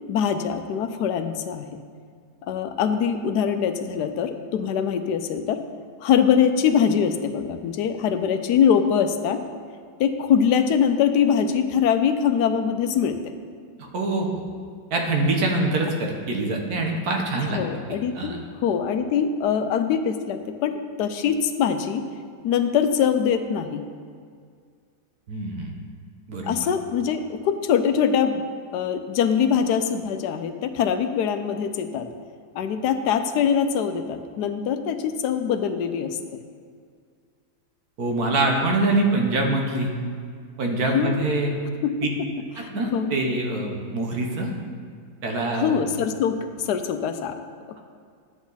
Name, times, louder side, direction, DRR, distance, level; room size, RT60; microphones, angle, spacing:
voice 1, 0.1-1.8 2.4-5.6 6.0-9.4 10.0-13.3 17.5-22.0 22.4-23.8 26.4-28.4 28.7-32.1 32.5-36.2 40.9-41.3 41.8-41.9 42.2-42.3 42.6-43.1 45.5-46.4 46.6-47.4, left 7 dB, 85° left, 8 dB, 1.2 m, -23 dB
voice 2, 13.8-14.4 14.9-17.6 18.1-18.4 25.3-25.7 26.3-26.7 38.0-39.9 40.6-41.5 42.0-42.1 42.6-44.5 45.2-45.8, right 2 dB, 70° right, 1 dB, 1.6 m, -24 dB
9.5 x 8.2 x 4.0 m, 2.1 s
omnidirectional pair, 1.7 m